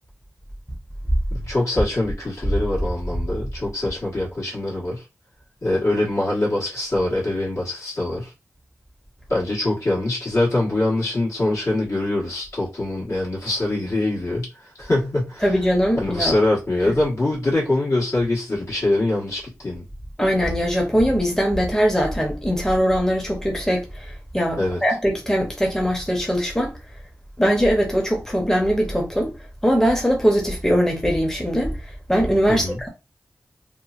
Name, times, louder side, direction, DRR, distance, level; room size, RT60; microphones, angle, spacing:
voice 1, 1.3-5.0 5.6-8.3 9.3-14.5 14.8-15.4 16.0-19.8 24.6-24.8 32.5-32.8, left 2 dB, 65° left, 1.5 m, -23 dB
voice 2, 15.4-16.3 20.2-26.7 27.4-29.3 29.6-32.9, equal, 10° left, 0.8 m, -21 dB
2.9 x 2.2 x 2.5 m
wide cardioid pair, 65°, 6 cm